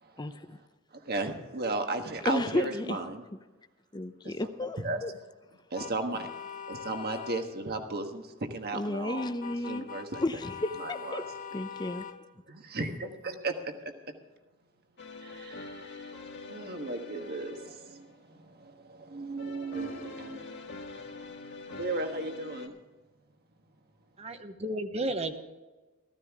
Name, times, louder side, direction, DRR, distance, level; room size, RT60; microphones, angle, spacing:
voice 1, 0.2-0.6 2.2-3.0 3.9-5.1 8.7-9.9 10.2-11.2 11.5-12.1, left 2 dB, 20° left, 10 dB, 0.6 m, -32 dB
voice 2, 0.9-3.2 4.2-4.5 4.8-5.0 5.7-6.3 6.7-9.3 9.6-10.2 10.8-11.3 12.5-13.9 15.2-22.7, right 2 dB, 50° right, 6 dB, 1.4 m, -36 dB
sound 1, 5.7-7.5 9.2-12.2, left 6 dB, 40° left, 1.0 m, -42 dB
sound 2, 15.0-18.2 19.4-22.7, left 3 dB, 55° left, 1.6 m, -45 dB
voice 3, 24.2-25.4, right 1 dB, 30° right, 8 dB, 1.0 m, -33 dB
14.5 x 14.0 x 3.6 m, 1.2 s
head